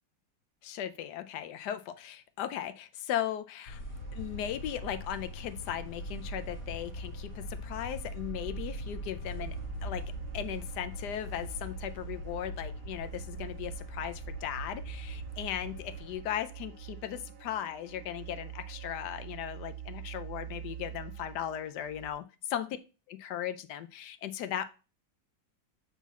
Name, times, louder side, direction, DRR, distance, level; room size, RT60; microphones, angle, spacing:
voice 1, 0.6-3.8 4.1-9.5 9.8-10.0 10.3-22.3 22.5-22.7 23.1-24.7, left 10 dB, 70° left, 11 dB, 1.1 m, -37 dB
sound 1, 3.7-16.2, left 1 dB, 45° left, 2.6 m, -42 dB
sound 2, 3.9-22.1, right 11 dB, 75° right, 0.5 m, -46 dB
7.1 x 3.9 x 4.1 m, 0.31 s
omnidirectional pair, 2.0 m